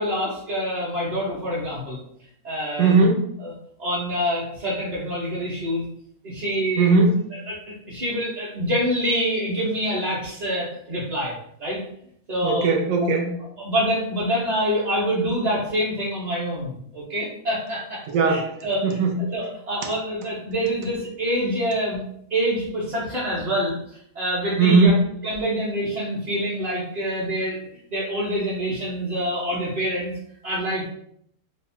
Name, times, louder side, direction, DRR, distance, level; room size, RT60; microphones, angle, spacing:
voice 1, 0.0-2.0 2.4-2.9 3.4-3.5 3.8-5.8 6.2-7.0 7.5-7.6 7.9-11.3 11.6-11.8 12.3-12.7 13.6-22.0 22.3-23.8 24.1-24.9 25.2-27.6 27.9-30.1 30.4-30.9, equal, 35° right, -8 dB, 0.7 m, -26 dB
voice 2, 2.8-3.2 6.8-7.1 12.4-13.3 18.1-18.5 18.8-19.3 24.6-25.0, right 3 dB, 70° right, 2 dB, 0.9 m, -18 dB
3.4 x 2.0 x 4.2 m, 0.67 s
omnidirectional pair, 1.6 m